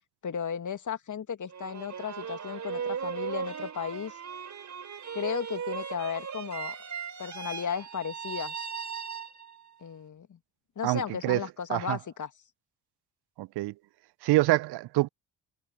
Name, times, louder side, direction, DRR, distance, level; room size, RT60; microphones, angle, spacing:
voice 1, 0.2-4.2 5.1-6.8 7.2-8.5 9.8-10.4 10.8-12.3, left 7 dB, 40° left, 2.6 m, -35 dB
sound 1, 1.5-9.7, right 7 dB, 40° right, 3.4 m, -37 dB
voice 2, 10.8-11.4 11.7-12.0 13.4-13.7 14.2-15.1, right 19 dB, 60° right, 1.1 m, -26 dB
figure-of-eight pair, 45°, 45 cm